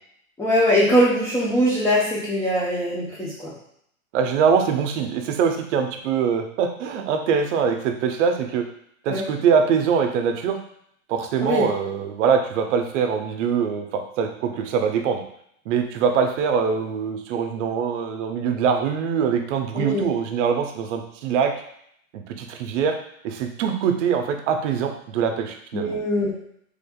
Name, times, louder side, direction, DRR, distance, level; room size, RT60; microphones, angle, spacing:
voice 1, 0.4-3.5 9.1-9.2 11.4-11.7 19.7-20.1 25.7-26.3, equal, 5° left, -8 dB, 0.5 m, -21 dB
voice 2, 4.1-8.6 9.0-10.6 11.1-15.2 15.7-21.5 22.1-22.9 23.2-25.9, right 6 dB, 60° right, 5 dB, 0.7 m, -23 dB
3.5 x 3.4 x 2.2 m, 0.69 s
hypercardioid pair, 115°, 42 cm